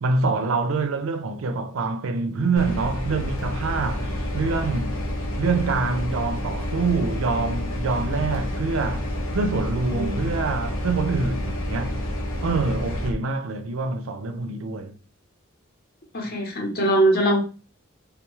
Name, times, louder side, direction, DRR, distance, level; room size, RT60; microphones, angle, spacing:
voice 1, 0.0-5.0 5.4-9.1 9.3-12.0 12.4-14.9, right 4 dB, 70° right, 0.4 m, -26 dB
sound 1, 2.6-13.1, equal, 90° left, 0.9 m, -29 dB
voice 2, 16.1-17.4, right 1 dB, 50° left, 0.9 m, -21 dB
3.4 x 2.3 x 3.0 m
head